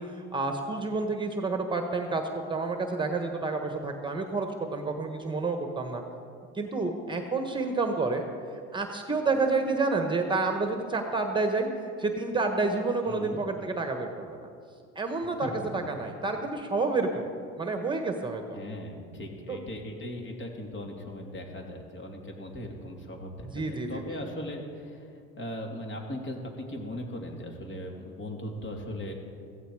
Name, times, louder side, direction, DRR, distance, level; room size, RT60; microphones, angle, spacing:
voice 1, 0.0-2.2 2.5-6.0 6.5-8.3 8.7-11.7 12.0-14.5 14.9-17.3 17.6-18.6 19.5-19.6 23.5-24.0, right 3 dB, 15° right, 5 dB, 1.3 m, -29 dB
voice 2, 13.0-13.4 15.4-15.5 18.5-25.1 25.4-29.1, left 1 dB, 40° left, 1 dB, 2.9 m, -38 dB
15.5 x 15.5 x 4.8 m, 2.3 s
supercardioid pair, 110°, 29 cm